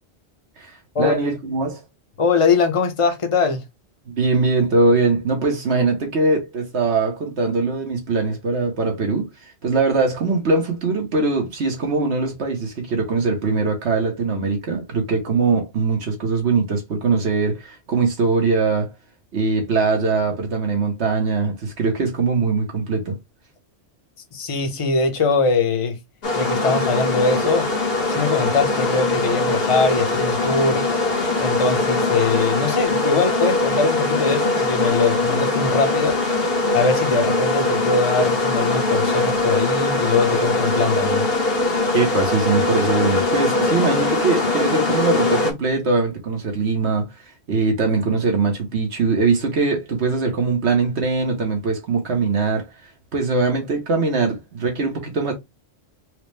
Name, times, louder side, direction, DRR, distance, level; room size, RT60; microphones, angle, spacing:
voice 1, 0.6-1.8 4.1-18.9 19.3-23.2 41.9-55.3, right 3 dB, 80° right, 1.4 m, -21 dB
voice 2, 2.2-3.6 24.3-26.0 26.4-27.7 28.1-31.1 31.4-36.2 36.7-41.3, left 4 dB, 35° left, 0.8 m, -21 dB
sound 1, 26.2-45.5, left 2 dB, 65° left, 1.3 m, -21 dB
4.6 x 2.1 x 3.2 m
omnidirectional pair, 1.1 m